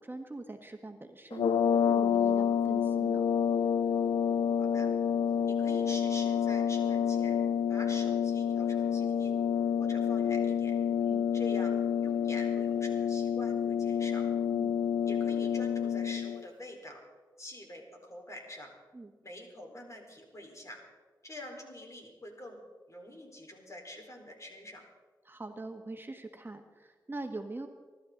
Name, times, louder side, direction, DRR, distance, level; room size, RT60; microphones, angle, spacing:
voice 1, 0.0-1.5 1.9-3.2 11.1-11.3 14.5-14.8 18.9-19.1 25.2-27.7, right 2 dB, 25° right, 5 dB, 1.5 m, -43 dB
sound 1, 1.3-16.4, left 8 dB, 90° left, 0.5 m, -28 dB
voice 2, 4.6-4.9 5.4-7.4 7.7-9.4 9.8-10.7 11.3-14.2 15.0-17.0 17.4-18.7 19.2-20.8 21.2-22.6 22.9-24.8, left 1 dB, 40° left, 1 dB, 4.4 m, -46 dB
25.0 x 12.5 x 4.0 m, 1.4 s
cardioid pair, 50°, 8 cm